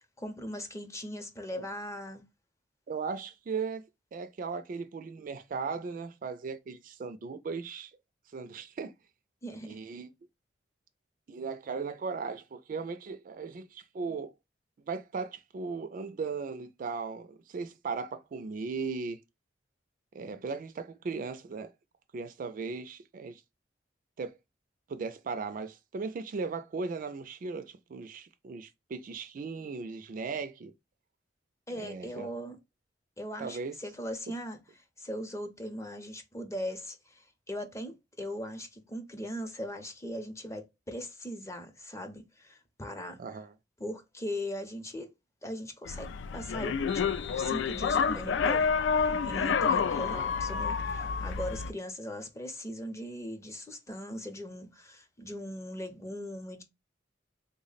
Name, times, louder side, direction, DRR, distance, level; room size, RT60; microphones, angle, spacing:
voice 1, 0.0-2.2 9.4-9.8 31.7-32.6 33.2-43.2 43.8-45.1 45.4-47.0 47.3-56.6, equal, 15° left, 0.6 m, -39 dB
voice 2, 2.9-3.9 4.1-7.9 8.3-8.9 9.6-10.1 11.3-14.3 14.9-19.2 20.1-21.7 22.1-23.4 24.2-24.3 24.9-30.7 31.8-32.3 33.4-33.8 34.3-34.4 43.2-43.5, right 4 dB, 50° right, 0.3 m, -37 dB
sound 1, 45.9-51.7, left 6 dB, 85° left, 0.3 m, -29 dB
3.5 x 2.1 x 3.9 m
head